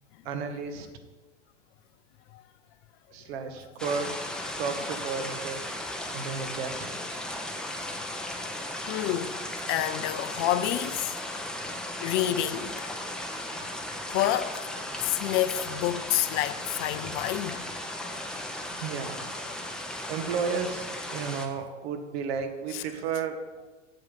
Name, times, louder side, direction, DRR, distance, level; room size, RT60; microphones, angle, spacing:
voice 1, 0.2-0.9 3.1-4.2 4.6-5.6 6.1-6.9 12.5-12.7 18.8-19.4 20.1-23.4, right 5 dB, 55° right, 1.4 m, -33 dB
sound 1, 3.8-21.5, left 1 dB, ahead, 0.8 m, -36 dB
voice 2, 8.9-9.4 9.7-11.2 12.0-12.9 14.1-17.6 22.7-22.8, left 13 dB, 35° left, 0.6 m, -28 dB
8.0 x 7.8 x 5.3 m
hypercardioid pair, 115°, 37 cm